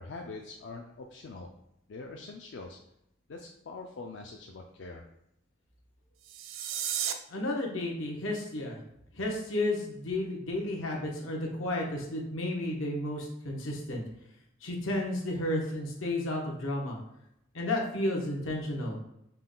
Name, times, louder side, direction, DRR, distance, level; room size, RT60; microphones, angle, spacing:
voice 1, 0.0-1.5 1.9-2.8 3.3-5.0, left 3 dB, 65° left, 1 dB, 0.4 m, -43 dB
sound 1, 6.2-7.1, right 9 dB, 75° right, 0.4 m, -33 dB
voice 2, 7.3-8.8 9.1-14.0 14.6-17.0 17.5-19.0, left 1 dB, 85° left, -1 dB, 1.0 m, -32 dB
5.5 x 2.2 x 3.8 m, 0.80 s
head